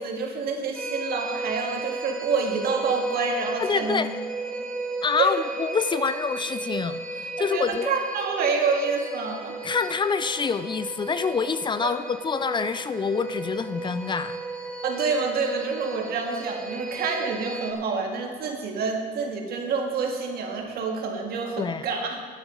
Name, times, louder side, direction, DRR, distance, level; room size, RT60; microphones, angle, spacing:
voice 1, 0.0-4.0 5.2-5.4 7.4-9.6 11.8-11.9 14.8-22.3, right 4 dB, 65° right, 2 dB, 2.0 m, -28 dB
sound 1, 0.7-17.7, right 2 dB, 5° left, 1.7 m, -35 dB
voice 2, 3.6-4.1 5.0-7.9 9.6-14.4 21.6-21.9, left 5 dB, 25° left, 12 dB, 0.4 m, -26 dB
11.0 x 8.9 x 5.3 m, 2.1 s
cardioid pair, 110°, 17 cm